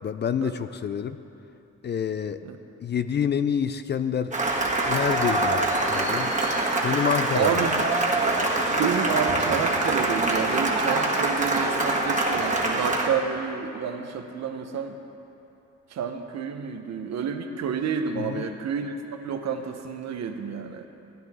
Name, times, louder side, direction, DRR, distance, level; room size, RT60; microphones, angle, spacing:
voice 1, 0.0-1.2 1.8-2.4 2.8-4.4 4.9-6.3 6.8-7.7 18.1-18.4, left 8 dB, 35° left, 11 dB, 0.4 m, -27 dB
Cheering / Applause, 4.3-13.1, right 2 dB, 25° right, 1.6 m, -24 dB
voice 2, 7.3-7.8 8.7-15.0 15.9-19.0 19.2-20.9, right 6 dB, 60° right, 6 dB, 1.0 m, -29 dB
16.5 x 9.8 x 3.6 m, 2.9 s
cardioid pair, 90°, 30 cm